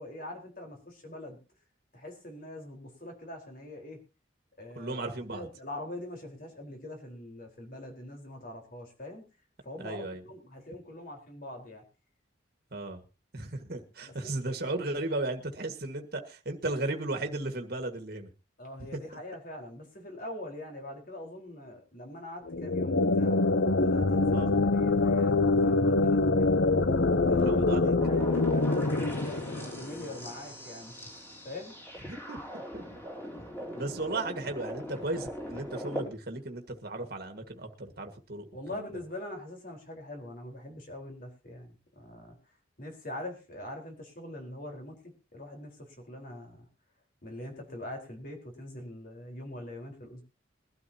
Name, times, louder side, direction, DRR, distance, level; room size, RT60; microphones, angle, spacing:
voice 1, 0.0-1.4 1.9-4.0 4.6-9.2 9.6-11.8 14.0-14.4 18.6-23.4 23.7-26.6 27.3-27.6 28.0-31.1 31.4-31.7 38.5-42.4 42.8-44.9 45.3-46.7 47.2-50.2, left 1 dB, 45° left, 2 dB, 4.4 m, -43 dB
voice 2, 4.8-5.5 9.8-10.2 12.7-13.0 13.3-18.3 18.9-19.0 24.3-24.5 27.4-27.9 32.1-32.4 32.7-32.8 33.7-38.8, right 2 dB, 50° right, 5 dB, 1.8 m, -35 dB
sound 1, 22.5-30.1, left 3 dB, 60° left, 0.8 m, -25 dB
sound 2, 28.0-36.1, equal, 10° left, 4.7 m, -41 dB
21.5 x 12.5 x 2.9 m, 0.32 s
head